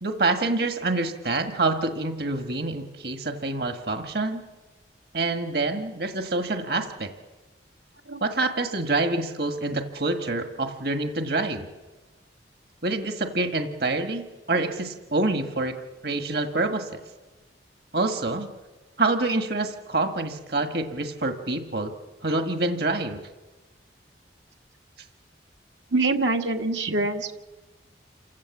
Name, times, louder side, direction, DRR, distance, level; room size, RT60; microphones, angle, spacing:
voice 1, 0.0-4.4 5.1-7.1 8.2-11.7 12.8-15.8 16.0-17.0 17.9-18.5 19.0-21.9 22.2-23.2, right 2 dB, 60° right, 5 dB, 1.6 m, -26 dB
voice 2, 25.9-27.3, right 2 dB, 80° right, 3 dB, 1.7 m, -24 dB
28.5 x 16.0 x 7.3 m, 1.2 s
head